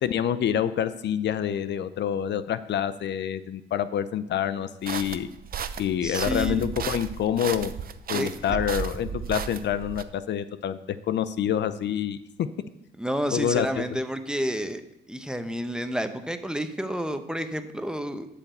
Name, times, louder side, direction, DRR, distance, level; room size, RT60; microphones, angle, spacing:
voice 1, 0.0-5.3 5.8-7.7 8.1-12.5 13.3-13.8, left 9 dB, 60° left, 13 dB, 0.6 m, -27 dB
sound 1, 4.9-10.0, right 7 dB, 50° right, 0.7 m, -34 dB
voice 2, 6.0-6.7 8.1-8.6 13.0-14.8 15.1-18.3, equal, 5° right, 8 dB, 0.8 m, -30 dB
8.1 x 5.9 x 8.0 m, 0.85 s
cardioid pair, 90°, 20 cm